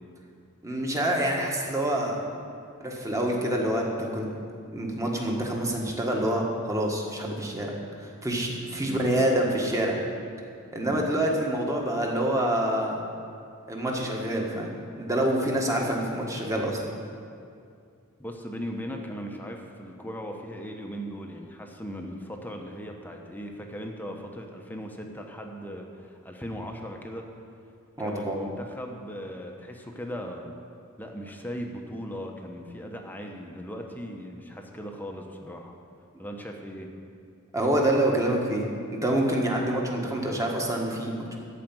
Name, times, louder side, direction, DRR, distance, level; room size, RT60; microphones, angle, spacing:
voice 1, 0.6-2.2 2.8-4.3 4.7-7.7 8.0-9.9 10.7-13.0 13.7-16.9 28.0-28.4 37.5-38.6 38.9-41.4, right 1 dB, 15° right, -1 dB, 1.5 m, -27 dB
voice 2, 18.2-27.3 28.0-30.5 31.0-35.7 36.2-36.9, equal, 10° left, 2 dB, 0.9 m, -38 dB
14.0 x 5.0 x 9.0 m, 2.4 s
head